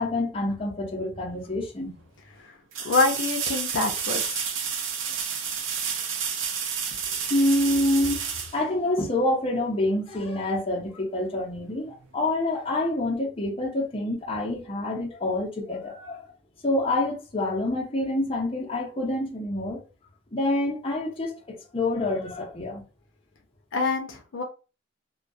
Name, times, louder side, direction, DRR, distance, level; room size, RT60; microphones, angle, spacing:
voice 1, 0.0-2.0 7.3-16.3 16.6-19.8 20.3-22.8, left 1 dB, 30° left, 0.6 m, -27 dB
sound 1, 1.3-1.4 2.7-9.3 12.2-12.3, right 7 dB, 85° right, 0.5 m, -30 dB
voice 2, 2.8-4.4 23.7-24.4, left 3 dB, 75° left, 0.5 m, -26 dB
2.2 x 2.2 x 2.6 m
head